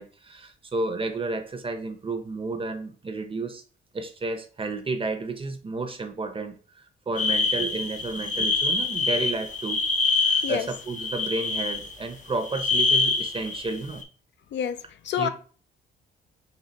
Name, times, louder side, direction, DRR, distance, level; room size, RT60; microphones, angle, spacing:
voice 1, 0.0-3.6 3.9-14.0 15.2-15.3, right 3 dB, 25° right, 8 dB, 0.8 m, -32 dB
sound 1, 7.2-12.1 12.4-14.0, left 3 dB, 40° left, 0.8 m, -25 dB
voice 2, 10.4-10.7 14.5-14.8 15.0-15.3, left 9 dB, 65° left, 10 dB, 0.5 m, -27 dB
4.0 x 2.7 x 4.2 m, 0.40 s
cardioid pair, 90°, 20 cm